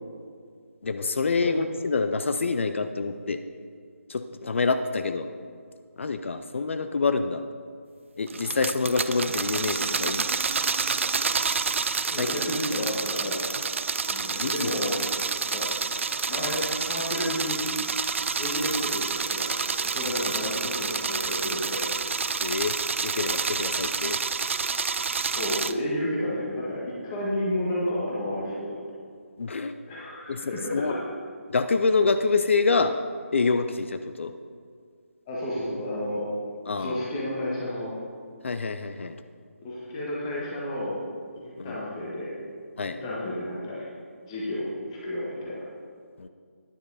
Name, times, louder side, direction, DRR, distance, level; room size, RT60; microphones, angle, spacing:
voice 1, 0.8-3.4 4.1-5.2 6.0-7.4 8.2-10.3 12.1-12.3 14.4-14.7 22.4-22.7 23.0-24.2 29.4-29.7 30.3-30.9 31.5-32.9 33.3-34.3 36.7-37.0 38.4-39.2 41.6-41.8 42.8-43.0 46.2-46.3, left 4 dB, 55° left, 9 dB, 0.4 m, -26 dB
sound 1, 8.3-25.7, right 5 dB, 55° right, 0.3 m, -28 dB
voice 2, 12.1-13.4 14.1-15.0 15.5-15.6 16.3-17.6 18.4-21.8 25.3-28.7 29.9-31.0 35.3-36.2 36.7-37.9 39.6-41.0 41.4-42.3 42.9-43.9 44.3-44.7 45.0-45.6, left 1 dB, 20° left, -6 dB, 1.6 m, -31 dB
9.9 x 7.9 x 4.1 m, 2.1 s
figure-of-eight pair, 155°, 8 cm